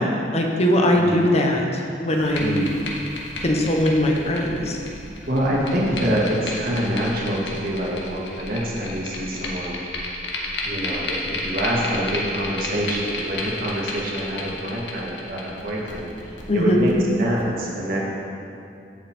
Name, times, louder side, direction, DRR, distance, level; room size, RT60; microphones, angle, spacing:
voice 1, 0.0-1.7 2.0-2.6 3.4-4.8 16.5-16.8, left 1 dB, 40° left, 1 dB, 1.1 m, -20 dB
voice 2, 0.9-1.3 2.3-2.8 5.3-9.8 10.6-16.9 17.2-18.0, equal, 55° right, -4 dB, 2.0 m, -26 dB
sound 1, 2.1-17.4, left 2 dB, 75° left, 1.5 m, -33 dB
15.5 x 5.6 x 4.4 m, 2.7 s
head